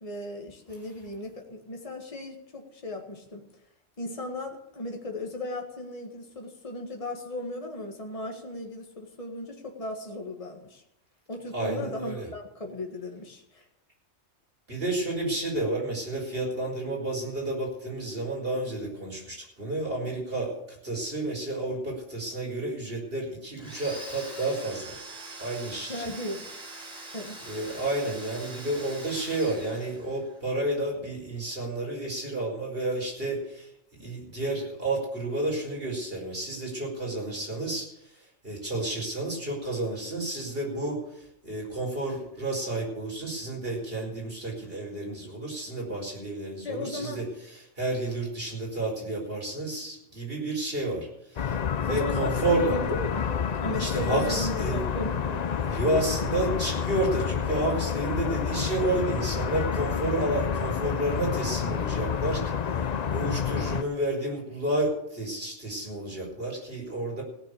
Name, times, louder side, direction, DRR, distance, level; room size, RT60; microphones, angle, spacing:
voice 1, 0.0-3.5 4.0-10.8 11.3-13.7 20.0-20.2 25.9-26.5 27.1-27.4 46.6-47.2 51.9-53.3 53.6-55.5, left 1 dB, 30° left, 2 dB, 1.8 m, -36 dB
voice 2, 11.5-12.3 14.7-20.5 20.8-25.0 25.4-26.1 27.5-33.7 34.0-37.9 38.4-41.0 41.4-47.3 47.8-51.1 51.3-52.8 53.8-54.8 55.6-62.4 63.1-67.2, right 2 dB, 50° right, -2 dB, 5.1 m, -30 dB
Domestic sounds home sounds, 23.6-30.4, right 2 dB, 5° right, 5.6 m, -43 dB
sound 1, 51.4-63.8, left 7 dB, 45° left, 0.6 m, -29 dB
16.5 x 6.7 x 8.4 m, 0.80 s
omnidirectional pair, 1.2 m